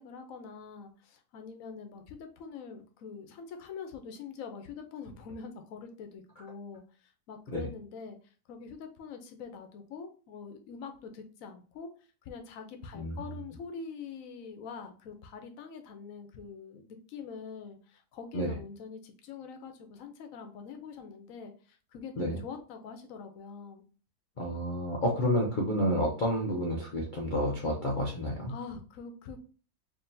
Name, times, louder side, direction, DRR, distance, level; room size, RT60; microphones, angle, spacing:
voice 1, 0.0-8.2 8.5-11.9 12.2-23.8 28.5-29.4, left 5 dB, 60° left, 6 dB, 1.0 m, -44 dB
voice 2, 12.9-13.3 18.3-18.5 22.2-22.4 24.4-28.5, equal, 80° left, -1 dB, 0.4 m, -30 dB
4.7 x 2.8 x 2.7 m, 0.38 s
omnidirectional pair, 2.0 m